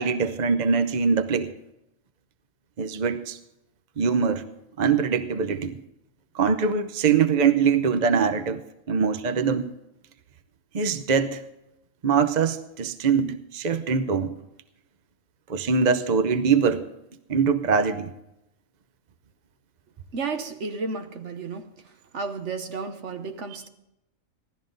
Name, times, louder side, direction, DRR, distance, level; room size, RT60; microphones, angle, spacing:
voice 1, 0.0-1.5 2.8-3.4 4.0-4.4 4.8-5.8 6.3-8.6 8.9-9.7 10.7-11.4 12.0-14.3 15.5-16.8 17.3-18.1, right 6 dB, 40° right, 0.7 m, -23 dB
voice 2, 20.1-21.7 22.1-23.7, right 4 dB, 60° right, 1.3 m, -32 dB
16.5 x 12.5 x 3.9 m
omnidirectional pair, 1.4 m